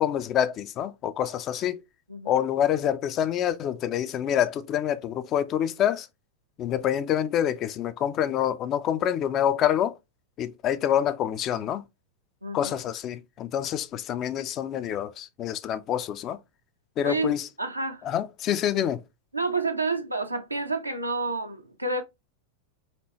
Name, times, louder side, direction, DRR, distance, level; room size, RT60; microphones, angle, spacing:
voice 1, 0.0-1.8 2.3-6.1 6.6-10.0 10.4-11.8 12.5-16.4 17.0-17.5 18.0-19.0, left 10 dB, 35° left, 0.4 m, -26 dB
voice 2, 12.4-12.8 17.0-18.0 19.3-22.0, right 3 dB, 85° right, 0.7 m, -29 dB
4.3 x 2.9 x 3.0 m
figure-of-eight pair, 90°, 0 cm